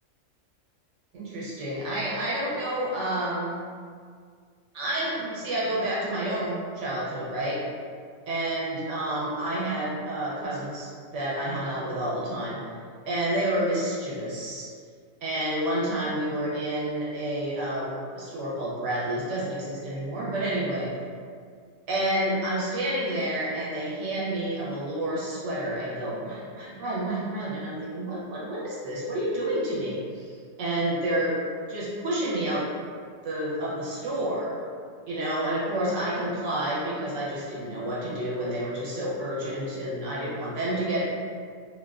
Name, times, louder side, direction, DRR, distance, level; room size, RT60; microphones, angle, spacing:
voice 1, 1.1-3.6 4.7-7.6 8.3-12.6 13.1-14.7 15.2-20.9 21.9-31.4 31.7-32.7 33.2-34.5 35.1-41.0, right 1 dB, 65° right, -6 dB, 0.9 m, -29 dB
2.4 x 2.2 x 2.3 m, 2.1 s
omnidirectional pair, 1.4 m